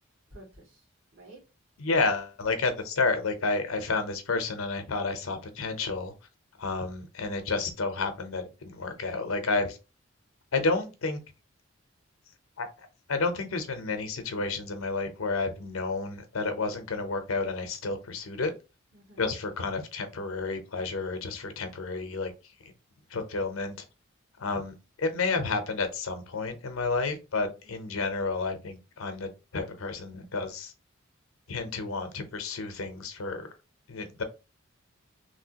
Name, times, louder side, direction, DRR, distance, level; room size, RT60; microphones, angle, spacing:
voice 1, 0.3-1.4 18.9-19.3 27.5-27.8 31.6-32.0, right 1 dB, 70° right, -3 dB, 1.7 m, -52 dB
voice 2, 1.8-6.1 6.6-9.8 10.5-11.2 12.6-12.7 13.1-18.5 19.2-22.3 23.1-23.8 24.4-30.7 31.5-33.5 33.9-34.2, left 3 dB, 85° left, 8 dB, 0.7 m, -30 dB
3.2 x 2.7 x 2.8 m, 0.30 s
head